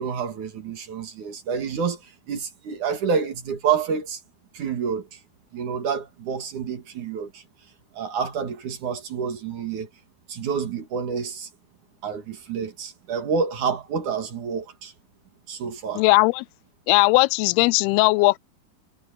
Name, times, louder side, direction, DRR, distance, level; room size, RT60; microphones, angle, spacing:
voice 1, 0.0-4.2 4.5-5.2 5.5-7.4 7.9-9.9 10.3-11.5 12.0-14.9 15.5-16.0, right 6 dB, 55° right, 3.4 m, -28 dB
voice 2, 16.0-16.4 16.9-18.4, left 23 dB, 85° left, 2.5 m, -18 dB
omnidirectional pair, 4.4 m